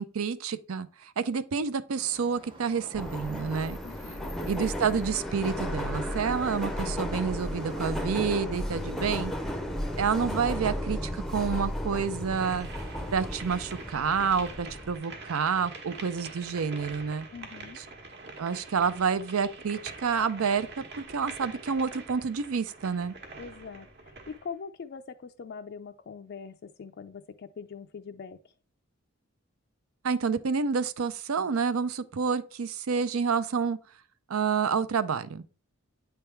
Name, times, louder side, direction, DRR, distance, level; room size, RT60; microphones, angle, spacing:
voice 1, 0.0-3.8 4.5-9.3 10.0-12.7 13.1-17.3 17.8-17.9 18.4-23.1 30.0-33.8 34.3-35.4, right 6 dB, 80° right, 0.5 m, -29 dB
sound 1, 2.0-14.5, right 1 dB, 25° right, 1.0 m, -52 dB
Subway metro underground, 2.9-15.0, equal, ahead, 0.5 m, -34 dB
voice 2, 3.8-4.3 17.3-17.8 23.4-28.4, left 5 dB, 50° left, 0.4 m, -42 dB
sound 2, 12.4-24.5, right 3 dB, 50° right, 1.2 m, -45 dB
8.7 x 3.5 x 4.4 m
head